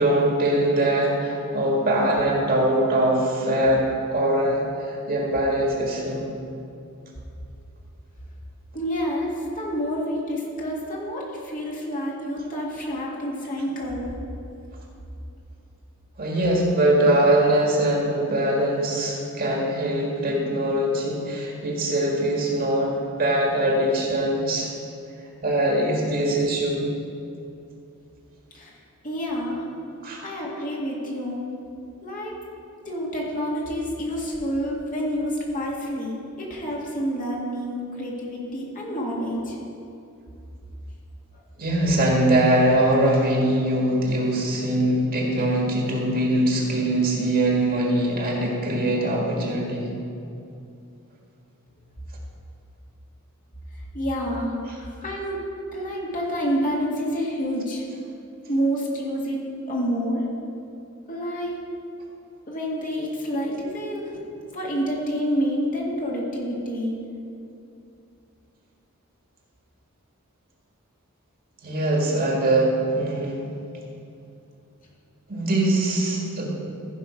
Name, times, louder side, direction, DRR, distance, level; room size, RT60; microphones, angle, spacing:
voice 1, 0.0-6.3 16.2-24.7 25.4-26.9 30.0-30.2 41.6-49.9 71.6-73.5 75.3-76.5, right 1 dB, 45° right, -2 dB, 1.9 m, -22 dB
voice 2, 8.7-14.1 28.5-28.7 29.0-29.7 30.2-31.5 32.0-32.4 32.9-39.6 41.3-41.4 53.9-55.4 55.7-57.8 58.5-59.4 59.7-60.2 61.1-61.6 62.5-64.2 64.4-67.0, equal, 40° left, -3 dB, 1.9 m, -28 dB
14.5 x 5.5 x 5.1 m, 2.6 s
head